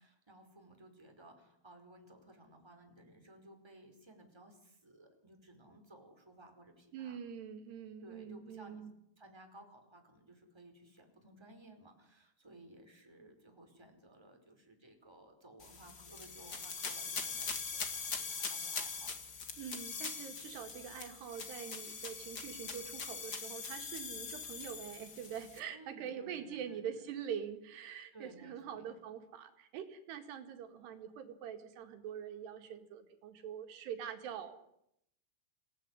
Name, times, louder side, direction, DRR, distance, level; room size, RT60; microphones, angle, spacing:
voice 1, 0.0-7.2 8.0-8.8 9.2-19.1 25.7-27.0 28.1-28.9, right 1 dB, 5° right, 4 dB, 4.5 m, -58 dB
voice 2, 6.9-8.9 19.6-34.6, right 8 dB, 90° right, 7 dB, 4.1 m, -44 dB
sound 1, 15.6-25.6, left 5 dB, 35° left, 2.0 m, -42 dB
26.5 x 18.5 x 9.9 m, 0.78 s
omnidirectional pair, 4.6 m